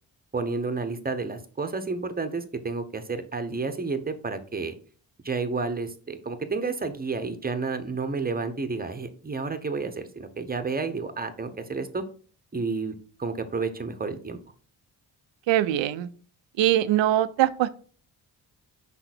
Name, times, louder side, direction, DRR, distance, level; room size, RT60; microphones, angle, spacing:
voice 1, 0.3-4.7 5.2-12.0 12.5-12.9 13.2-14.4, right 4 dB, 20° right, 9 dB, 1.0 m, -30 dB
voice 2, 15.5-16.1 16.6-17.7, right 13 dB, 75° right, 15 dB, 0.6 m, -22 dB
5.6 x 4.0 x 4.2 m, 0.43 s
supercardioid pair, 50°, 46 cm